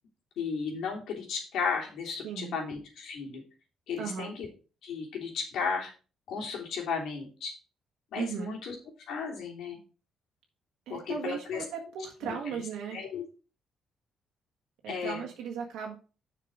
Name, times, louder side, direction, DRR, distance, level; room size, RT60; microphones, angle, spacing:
voice 1, 0.4-3.4 3.9-4.5 4.8-5.9 6.3-7.5 8.1-8.7 9.1-9.8 10.9-11.6 12.2-12.6 12.9-13.2 14.9-15.2, left 5 dB, 75° left, 0 dB, 3.2 m, -34 dB
voice 2, 2.2-2.6 4.0-4.3 8.1-8.5 10.9-13.0 14.8-16.0, right 6 dB, 90° right, 0 dB, 1.6 m, -37 dB
7.1 x 5.9 x 4.9 m, 0.35 s
cardioid pair, 90°, 0 cm